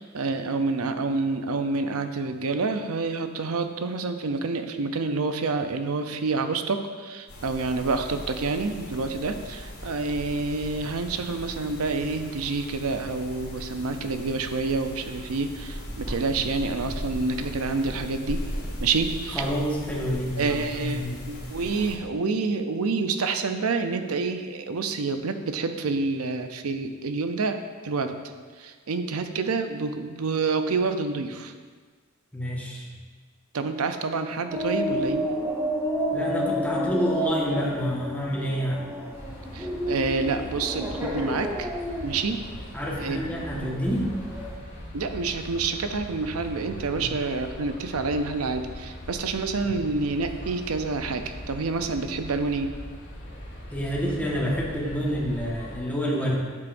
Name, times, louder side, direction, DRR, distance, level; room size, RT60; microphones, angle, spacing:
voice 1, 0.0-18.4 18.8-19.5 20.4-28.2 28.6-31.5 33.5-35.3 39.5-41.7 42.0-42.4 43.0-43.8 44.9-52.7, right 4 dB, 90° right, 7 dB, 0.6 m, -28 dB
sound 1, 7.3-22.0, equal, 80° left, 2.2 m, -38 dB
voice 2, 19.3-21.2 32.3-32.9 36.1-38.8 42.7-44.1 47.0-47.2 53.7-56.4, equal, 10° left, -4 dB, 1.4 m, -28 dB
sound 2, 34.5-44.6, equal, 10° right, 1.1 m, -30 dB
sound 3, 39.1-55.8, equal, 60° left, 2.3 m, -40 dB
9.4 x 7.6 x 2.6 m, 1.5 s
head